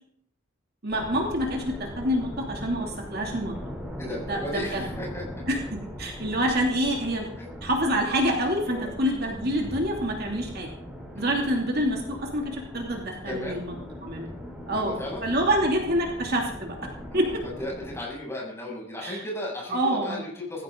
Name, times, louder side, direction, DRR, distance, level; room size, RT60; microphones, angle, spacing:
voice 1, 0.8-3.6 4.0-4.8 5.5-5.6 6.0-7.3 7.6-10.7 11.1-14.3 14.7-16.8 17.1-17.4 19.0-19.2 19.7-20.2, equal, 50° right, 0 dB, 2.8 m, -27 dB
sound 1, 0.9-18.0, equal, 5° right, 3.5 m, -40 dB
voice 2, 4.0-5.2 7.4-7.5 8.7-8.9 11.2-11.3 13.2-13.6 14.7-15.2 17.1-20.6, left 1 dB, 10° left, -3 dB, 7.3 m, -35 dB
19.5 x 16.0 x 3.9 m, 0.67 s
head